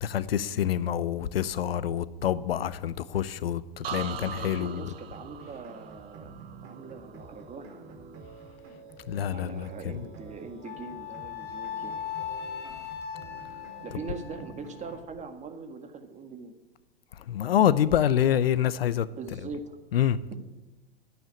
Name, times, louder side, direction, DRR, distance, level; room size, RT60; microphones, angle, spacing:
voice 1, 0.0-4.7 9.1-9.7 17.3-19.1 19.9-20.2, left 10 dB, 80° left, 0.8 m, -26 dB
sound 1, 3.8-7.6 8.0-8.5, right 9 dB, 80° right, 1.2 m, -41 dB
voice 2, 3.9-8.0 9.3-12.1 13.8-16.5 19.2-19.8, right 4 dB, 25° right, 1.8 m, -42 dB
sound 2, 5.0-15.0, right 4 dB, 45° right, 3.4 m, -49 dB
Wind instrument woodwind instrument, 10.6-15.0, left 8 dB, 35° left, 1.6 m, -38 dB
10.5 x 9.4 x 8.5 m
hypercardioid pair, 105°, 29 cm